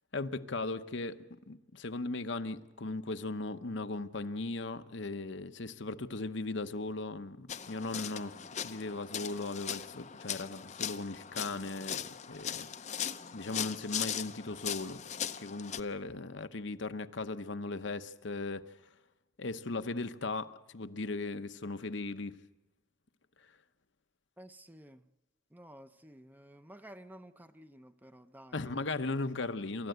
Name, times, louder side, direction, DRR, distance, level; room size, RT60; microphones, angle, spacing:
voice 1, 0.1-8.3 8.6-12.7 13.3-15.0 15.4-18.6 19.4-22.3 28.5-29.9, left 3 dB, 60° left, 0.9 m, -37 dB
sound 1, 7.5-15.8, left 9 dB, 35° left, 0.7 m, -39 dB
voice 2, 24.4-25.1 25.5-28.9, right 1 dB, 10° right, 0.7 m, -53 dB
28.5 x 14.0 x 8.0 m
head